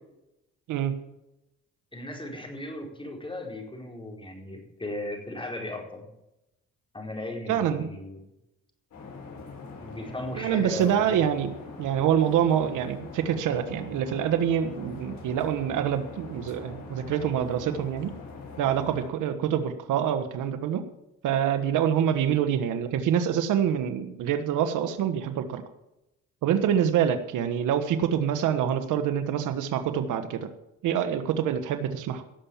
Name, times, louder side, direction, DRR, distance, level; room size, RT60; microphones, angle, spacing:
voice 1, 1.9-6.1 6.9-8.3 9.8-11.3, left 1 dB, 15° left, 1 dB, 4.5 m, -37 dB
voice 2, 7.5-7.9 10.4-11.5 11.8-18.1 18.6-20.8 21.2-25.6 26.4-30.5 30.8-32.2, right 9 dB, 85° right, 9 dB, 1.4 m, -26 dB
sound 1, 8.9-19.1, left 4 dB, 65° left, 6.4 m, -43 dB
17.5 x 7.3 x 7.1 m, 0.90 s
cardioid pair, 90°, 30 cm